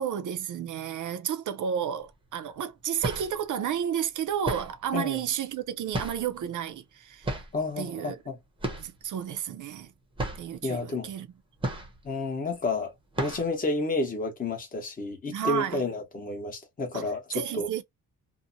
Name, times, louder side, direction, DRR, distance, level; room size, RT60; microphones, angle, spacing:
voice 1, 0.0-7.4 7.8-8.2 8.8-9.9 10.3-11.3 15.3-15.8 16.9-17.8, right 9 dB, 55° right, 0.5 m, -32 dB
sound 1, 2.0-2.1 2.8-3.5 4.4-4.9 5.9-6.4 7.2-7.6 8.6-9.0 9.3-9.4 9.8-9.9 10.2-10.6 11.6-12.2 12.6-12.7 13.1-13.6, right 1 dB, 15° right, 0.7 m, -33 dB
voice 2, 7.5-8.4 10.6-11.1 12.0-17.7, left 2 dB, 25° left, 0.9 m, -31 dB
2.7 x 2.1 x 2.5 m
cardioid pair, 130°, 36 cm